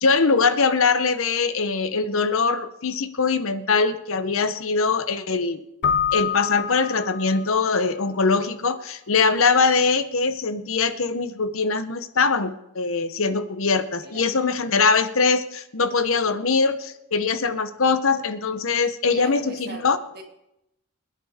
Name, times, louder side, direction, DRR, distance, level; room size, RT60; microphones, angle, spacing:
voice 1, 0.0-5.6 6.1-20.0, left 4 dB, 65° left, 12 dB, 0.9 m, -22 dB
Keyboard (musical), 5.8-7.6, left 7 dB, 50° left, 0.4 m, -26 dB
voice 2, 14.0-14.4 19.1-20.2, right 1 dB, 45° right, 2 dB, 2.1 m, -39 dB
25.5 x 10.5 x 3.6 m, 0.86 s
head